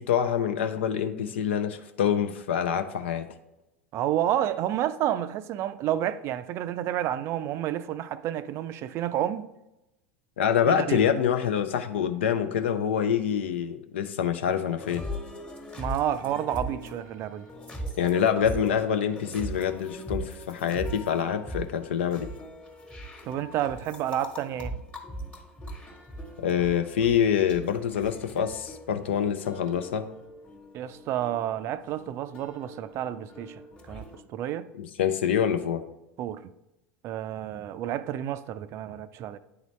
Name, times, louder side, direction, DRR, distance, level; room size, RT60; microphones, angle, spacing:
voice 1, 0.0-3.3 10.4-15.0 18.0-22.3 26.4-30.1 34.8-35.8, left 8 dB, 70° left, 0.5 m, -26 dB
voice 2, 3.9-9.5 10.7-11.1 15.8-17.5 23.2-24.8 30.7-33.6 33.9-34.7 36.2-36.4 37.0-39.4, right 11 dB, 45° right, 0.4 m, -30 dB
sound 1, 14.8-34.2, equal, 15° left, 1.3 m, -40 dB
9.3 x 3.9 x 3.1 m
figure-of-eight pair, 80°, 6 cm